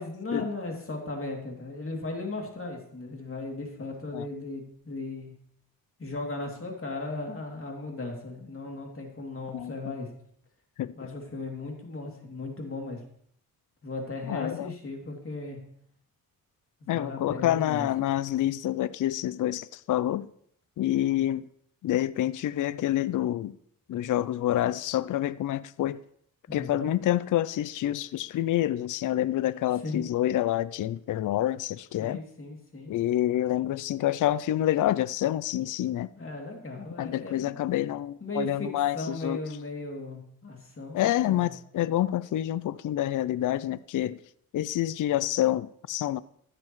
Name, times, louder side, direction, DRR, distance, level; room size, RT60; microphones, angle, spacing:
voice 1, 0.0-5.3 6.0-10.1 11.0-13.0 13.8-15.6 16.8-17.9 26.5-26.9 29.8-30.1 32.0-32.9 36.2-37.5 38.2-38.7 38.9-41.5, left 2 dB, 35° left, 2.8 m, -36 dB
voice 2, 14.3-14.7 16.9-20.3 20.8-21.5 21.8-23.6 23.9-26.0 26.5-32.2 32.9-36.1 37.0-39.4 40.9-44.2 44.5-46.2, left 13 dB, 60° left, 0.4 m, -27 dB
15.0 x 7.7 x 3.1 m
cardioid pair, 70°, 35 cm